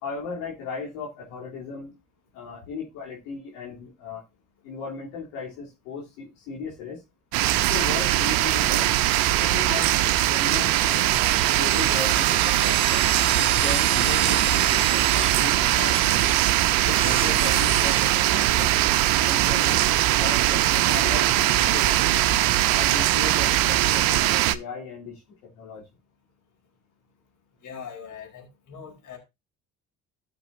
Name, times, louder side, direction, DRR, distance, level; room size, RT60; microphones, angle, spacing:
voice 1, 0.0-1.9 2.3-4.2 4.6-7.0 7.7-8.9 9.4-13.1 13.5-16.2 16.8-18.7 19.2-22.2 22.7-25.2 25.5-25.8, left 4 dB, 85° left, 3.4 m, -36 dB
sound 1, 7.3-24.6, right 15 dB, 75° right, 0.8 m, -21 dB
sound 2, 11.1-18.2, right 5 dB, 15° right, 0.5 m, -32 dB
voice 2, 27.6-29.2, left 7 dB, 55° left, 4.2 m, -41 dB
14.5 x 6.1 x 2.7 m
supercardioid pair, 75°, 35 cm